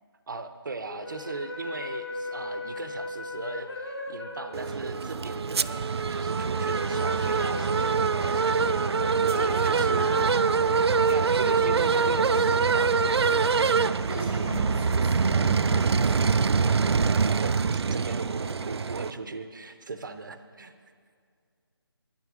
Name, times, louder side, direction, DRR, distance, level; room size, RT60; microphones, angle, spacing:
voice 1, 0.3-10.2 11.1-13.1 17.1-20.7, right 3 dB, 50° right, 10 dB, 0.7 m, -38 dB
sound 1, 0.8-11.3, left 1 dB, 85° left, 2.4 m, -38 dB
sound 2, 4.5-19.1, right 5 dB, 90° right, 0.4 m, -24 dB
voice 2, 9.3-10.7 14.1-16.7 17.1-17.4, equal, 5° left, -4 dB, 0.5 m, -38 dB
10.5 x 9.5 x 6.1 m, 2.1 s
figure-of-eight pair, 170°, 13 cm